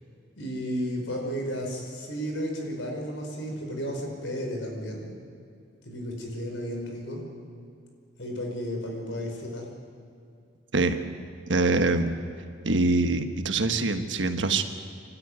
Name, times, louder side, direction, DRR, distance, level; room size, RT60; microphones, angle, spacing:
voice 1, 0.4-5.1 5.8-7.2 8.2-9.7, equal, 90° left, 1 dB, 4.9 m, -33 dB
voice 2, 11.5-12.2 12.6-14.6, right 3 dB, 80° right, 8 dB, 1.4 m, -24 dB
26.5 x 12.5 x 9.7 m, 2.4 s
head